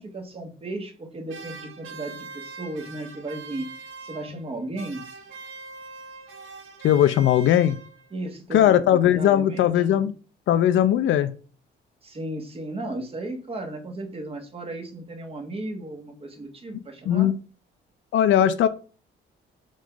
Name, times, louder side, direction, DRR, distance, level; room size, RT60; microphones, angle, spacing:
voice 1, 0.0-5.0 8.1-9.8 12.0-17.3, right 2 dB, 30° right, 1.5 m, -35 dB
sound 1, 1.3-4.5 4.8-8.2, right 4 dB, 75° right, 1.4 m, -42 dB
voice 2, 6.8-7.8 8.5-10.1 10.5-11.3 17.1-17.3 18.1-18.7, left 11 dB, 75° left, 0.6 m, -19 dB
5.4 x 3.7 x 5.0 m
cardioid pair, 90°, 20 cm